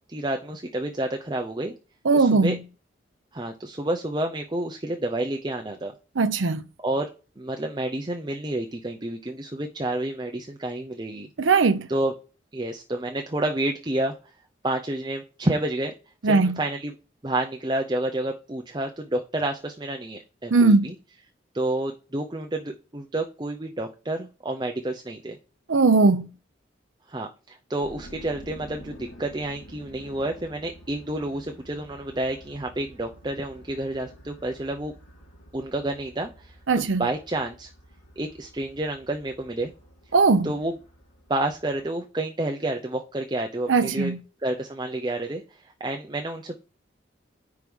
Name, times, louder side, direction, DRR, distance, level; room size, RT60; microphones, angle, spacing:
voice 1, 0.1-1.7 2.1-2.6 3.3-5.9 6.8-7.1 7.4-11.3 11.9-12.1 12.5-14.1 14.6-15.9 16.2-16.9 17.2-20.9 21.5-25.4 27.1-34.9 35.5-37.7 38.2-39.7 40.4-40.7 41.3-44.1 44.4-46.6, right 1 dB, 25° right, 0.7 m, -29 dB
voice 2, 2.0-2.6 6.2-6.6 11.4-11.9 16.2-16.6 20.5-20.9 25.7-26.3 36.7-37.0 40.1-40.5 43.7-44.2, right 4 dB, 90° right, 0.7 m, -19 dB
sound 1, 27.8-41.8, equal, 80° left, 2.9 m, -49 dB
5.3 x 4.7 x 6.1 m
head